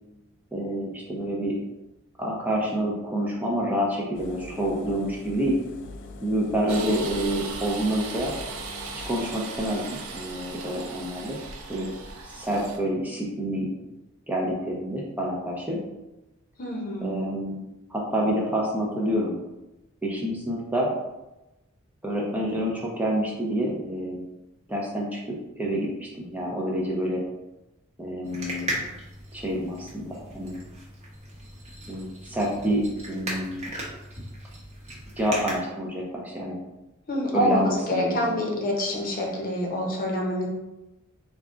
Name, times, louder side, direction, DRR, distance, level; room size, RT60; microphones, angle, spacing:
voice 1, 0.5-1.6 2.2-5.6 6.2-8.3 8.9-11.4 11.7-11.9 12.2-13.7 14.3-15.8 17.0-17.6 17.9-19.4 20.0-20.9 22.0-24.2 24.7-27.2 28.0-28.8 29.3-30.6 31.9-33.7 35.2-36.6 37.3-38.4, equal, 10° right, -3 dB, 0.5 m, -28 dB
Engine, 4.1-9.2, left 2 dB, 60° left, 0.4 m, -42 dB
sound 1, 6.7-12.8, right 4 dB, 75° right, 0.5 m, -38 dB
voice 2, 16.6-17.2 37.1-40.5, left 1 dB, 45° left, -1 dB, 0.8 m, -26 dB
sound 2, 28.2-35.6, right 1 dB, 30° right, 0.9 m, -37 dB
3.5 x 2.3 x 3.7 m, 0.97 s
head